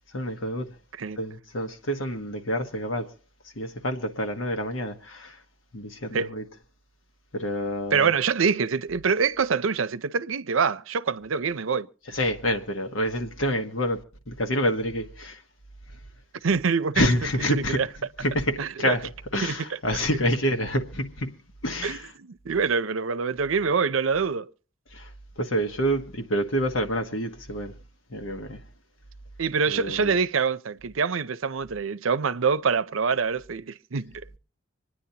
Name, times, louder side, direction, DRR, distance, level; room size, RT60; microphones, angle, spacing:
voice 1, 0.1-0.8 1.1-3.1 3.4-5.4 5.7-6.4 7.3-8.1 12.1-15.4 15.9-16.0 16.9-17.9 18.2-22.1 24.9-27.7 28.1-28.7 29.7-30.1, equal, 75° left, 1.4 m, -28 dB
voice 2, 7.9-11.9 16.4-17.0 17.5-17.9 18.6-19.0 19.4-19.6 21.8-24.5 29.4-34.4, right 5 dB, 85° right, 0.6 m, -25 dB
26.5 x 9.9 x 2.9 m
head